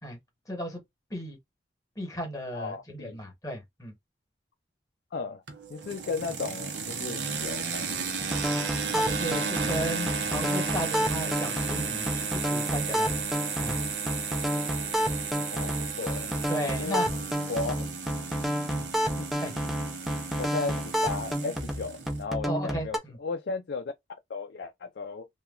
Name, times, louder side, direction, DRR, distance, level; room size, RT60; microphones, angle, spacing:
voice 1, 0.5-0.8 1.1-1.4 2.0-3.9 8.9-13.2 13.6-13.8 16.5-17.1 18.7-18.9 19.4-19.5 22.4-23.2, equal, 20° left, 1.0 m, -35 dB
voice 2, 2.5-3.2 5.1-5.4 5.7-8.5 15.5-16.3 16.8-17.0 17.5-17.8 19.1-19.3 20.4-23.9 24.3-25.3, left 4 dB, 65° left, 0.4 m, -35 dB
sound 1, 5.5-22.2, right 5 dB, 80° right, 0.7 m, -34 dB
sound 2, 8.2-23.0, equal, ahead, 0.4 m, -30 dB
2.9 x 2.2 x 2.3 m
head